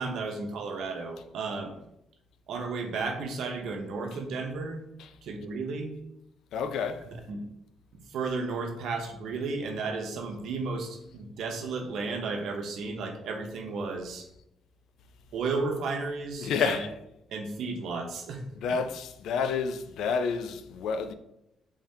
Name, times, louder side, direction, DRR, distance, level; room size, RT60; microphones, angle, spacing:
voice 1, 0.0-1.7 2.5-4.8 5.2-5.9 7.0-7.4 8.1-14.2 15.3-16.9 17.3-18.4 18.7-18.8, right 4 dB, 75° right, 0.6 m, -33 dB
voice 2, 6.5-7.0 16.4-16.9 18.6-21.1, left 5 dB, 80° left, 0.3 m, -29 dB
3.5 x 3.4 x 2.7 m
cardioid pair, 90°, 0 cm